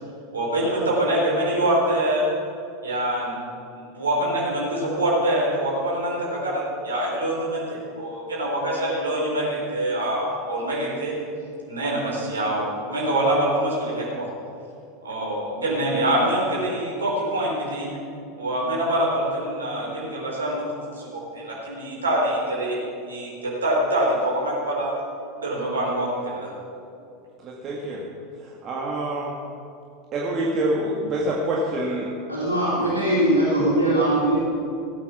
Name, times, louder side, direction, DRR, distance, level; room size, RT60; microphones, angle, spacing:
voice 1, 0.3-2.2 2.8-3.4 3.7-11.1 11.7-14.3 15.0-17.9 18.4-24.9 25.4-26.5, right 1 dB, 75° right, -3 dB, 4.1 m, -25 dB
voice 2, 27.4-28.1 28.4-29.3 30.1-32.1 32.7-32.9, right 1 dB, 35° right, -4 dB, 2.0 m, -26 dB
voice 3, 32.3-34.4, right 1 dB, 80° left, -8 dB, 3.3 m, -21 dB
17.5 x 8.6 x 6.1 m, 2.5 s
figure-of-eight pair, 80°, 0 cm